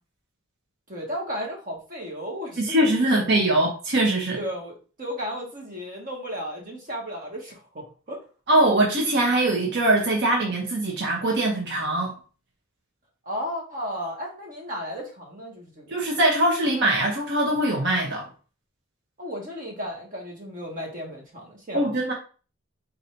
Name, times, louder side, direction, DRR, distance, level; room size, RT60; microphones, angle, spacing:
voice 1, 0.9-3.2 4.4-8.2 13.2-16.0 19.2-21.9, equal, 40° right, 0 dB, 1.4 m, -34 dB
voice 2, 2.6-4.4 8.5-12.1 15.9-18.3 21.7-22.1, right 1 dB, 60° right, 0 dB, 0.9 m, -22 dB
4.0 x 2.7 x 4.4 m, 0.37 s
head